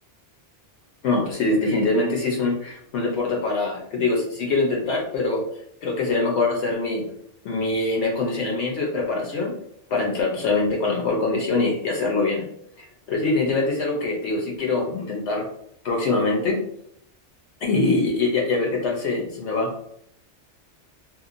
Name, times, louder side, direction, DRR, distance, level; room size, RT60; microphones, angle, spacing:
voice 1, 1.0-5.4 5.8-7.1 7.4-9.5 9.9-12.5 13.1-15.5 15.8-16.6 17.6-19.9, left 3 dB, 70° left, 0 dB, 0.9 m, -23 dB
2.9 x 2.4 x 2.4 m, 0.71 s
omnidirectional pair, 1.2 m